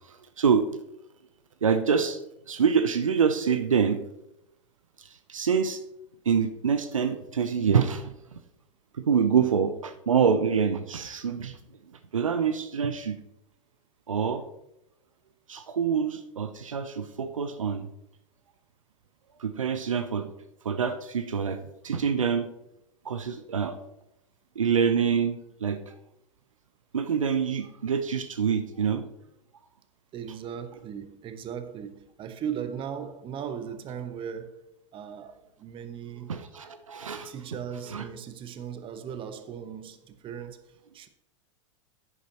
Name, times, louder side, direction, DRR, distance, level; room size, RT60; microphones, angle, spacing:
voice 1, 1.6-2.2 2.5-4.0 5.3-5.8 6.3-8.1 9.0-11.6 12.1-13.2 14.1-14.4 15.5-17.9 19.4-20.3 20.6-22.5 23.0-23.8 24.6-25.8 26.9-29.0 36.3-37.3 37.9-38.0, right 6 dB, 85° right, 0.7 m, -26 dB
voice 2, 30.1-34.6 34.9-36.4 37.2-41.1, right 8 dB, 30° right, 1.0 m, -38 dB
11.0 x 8.6 x 2.9 m
hypercardioid pair, 95°, 16 cm